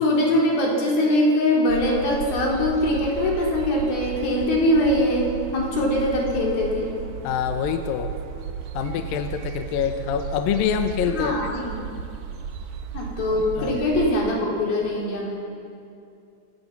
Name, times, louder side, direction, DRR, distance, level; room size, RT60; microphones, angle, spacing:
voice 1, 0.0-7.0 11.1-11.8 12.9-15.4, left 1 dB, 55° left, -2 dB, 5.3 m, -22 dB
sound 1, 1.7-14.1, right 7 dB, 70° right, 2.7 m, -34 dB
voice 2, 7.2-8.1 8.7-11.4 13.6-13.8, left 8 dB, 75° left, 7 dB, 2.2 m, -25 dB
27.5 x 17.5 x 6.0 m, 2.5 s
omnidirectional pair, 5.2 m